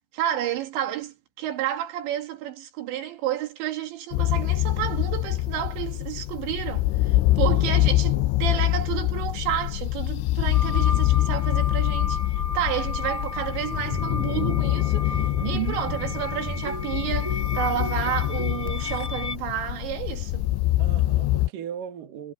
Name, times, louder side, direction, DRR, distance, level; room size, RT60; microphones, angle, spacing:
voice 1, 0.1-12.2 12.5-20.5, right 11 dB, 80° right, 4.2 m, -30 dB
sound 1, 4.1-21.5, left 17 dB, 90° left, 2.9 m, -25 dB
sound 2, 10.5-19.4, left 3 dB, 25° left, 1.7 m, -35 dB
sound 3, 13.7-18.7, right 1 dB, 5° right, 2.0 m, -37 dB
voice 2, 15.4-15.9 20.8-22.3, right 12 dB, 55° right, 3.3 m, -34 dB
omnidirectional pair, 5.1 m